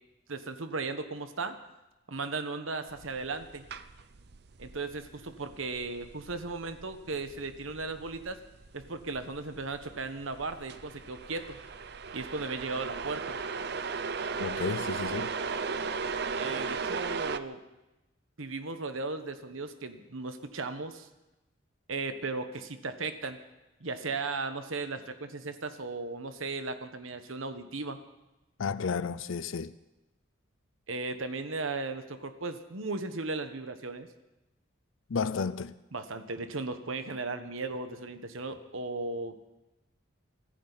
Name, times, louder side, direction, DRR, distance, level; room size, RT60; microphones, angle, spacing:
voice 1, 0.3-1.6 2.1-3.7 4.6-8.4 8.7-11.6 12.1-13.4 16.3-17.6 18.4-21.1 21.9-23.4 23.8-28.0 30.9-34.1 35.9-39.4, right 3 dB, 80° right, 1.3 m, -36 dB
sound 1, 2.9-17.4, right 5 dB, 50° right, 0.6 m, -37 dB
voice 2, 14.4-15.3 28.6-29.7 35.1-35.8, left 5 dB, 75° left, 0.5 m, -32 dB
24.5 x 14.5 x 4.1 m
head